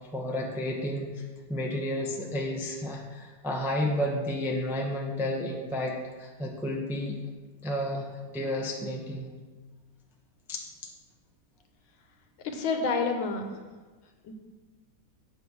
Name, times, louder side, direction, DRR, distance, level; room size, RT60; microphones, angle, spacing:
voice 1, 0.1-1.2 1.5-7.2 7.6-9.3 10.5-10.9, left 1 dB, 5° right, 0 dB, 0.4 m, -31 dB
voice 2, 12.4-13.6 14.2-14.3, left 4 dB, 90° left, 4 dB, 1.8 m, -28 dB
8.0 x 5.4 x 6.3 m, 1.3 s
omnidirectional pair, 2.1 m